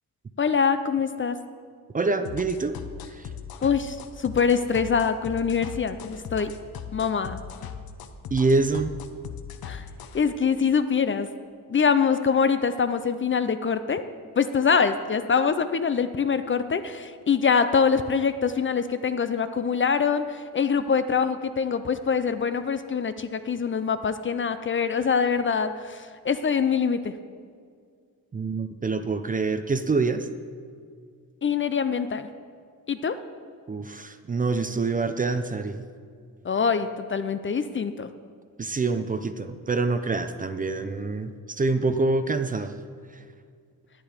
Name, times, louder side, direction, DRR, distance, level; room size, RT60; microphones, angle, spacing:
voice 1, 0.4-1.4 3.6-6.5 6.9-7.4 9.7-9.8 10.1-11.3 11.7-14.0 14.4-27.1 31.4-32.3 32.9-33.1 36.4-38.1, left 6 dB, 35° left, 11 dB, 0.4 m, -24 dB
voice 2, 1.9-2.8 3.0-3.3 8.3-8.9 28.3-30.3 33.7-35.9 38.6-42.7 43.1-43.2, right 3 dB, 25° right, 9 dB, 0.4 m, -26 dB
sound 1, 2.2-10.2, left 7 dB, 85° left, 0.8 m, -39 dB
10.5 x 10.0 x 5.0 m, 2.1 s
wide cardioid pair, 140°, 35 cm